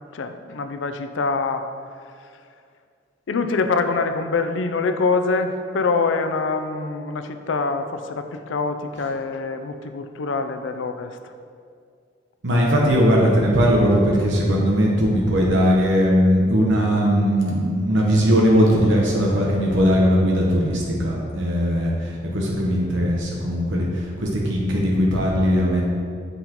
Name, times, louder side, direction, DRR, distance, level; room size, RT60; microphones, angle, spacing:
voice 1, 0.1-1.7 2.2-2.3 3.3-11.3, left 4 dB, 75° left, 8 dB, 0.4 m, -25 dB
voice 2, 12.4-25.8, equal, 75° right, -3 dB, 0.9 m, -19 dB
7.8 x 5.5 x 2.9 m, 2.2 s
head